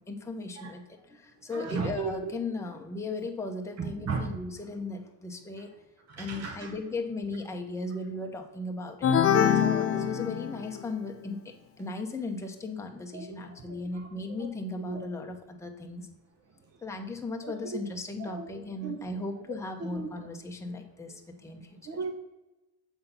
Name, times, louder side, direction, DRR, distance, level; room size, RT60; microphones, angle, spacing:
voice 1, 0.0-5.7 6.2-9.2 9.5-16.1 16.8-21.8, left 2 dB, 5° left, 2 dB, 0.8 m, -37 dB
voice 2, 1.5-2.1 3.8-4.3 6.1-6.7 13.1-13.3 14.4-14.5 14.9-15.0 17.4-17.8 18.2-18.5 18.8-19.0 19.9-20.1 21.9-22.1, right 4 dB, 35° right, 3 dB, 0.8 m, -35 dB
sound 1, 9.0-10.9, left 8 dB, 30° left, 0.5 m, -24 dB
6.9 x 3.8 x 5.5 m, 1.0 s
cardioid pair, 110°, 48 cm